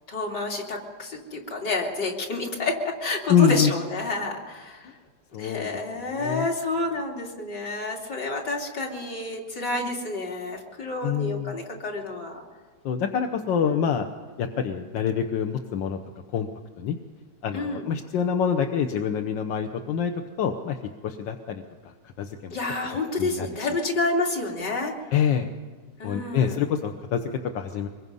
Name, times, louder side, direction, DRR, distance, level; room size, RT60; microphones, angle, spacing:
voice 1, 0.1-4.9 5.4-12.4 13.7-13.9 17.5-17.8 22.5-24.9 26.0-26.6, left 2 dB, 65° left, -1 dB, 3.5 m, -29 dB
voice 2, 3.3-3.7 5.3-5.7 6.1-6.5 11.0-11.6 12.8-14.1 14.4-16.0 16.3-16.5 16.8-17.0 17.4-20.1 20.4-20.8 21.0-21.6 22.2-22.6 23.2-23.7 25.1-25.5 26.0-27.2 27.5-27.9, left 7 dB, 85° left, 5 dB, 1.7 m, -25 dB
24.0 x 22.0 x 5.5 m, 1.5 s
omnidirectional pair, 1.9 m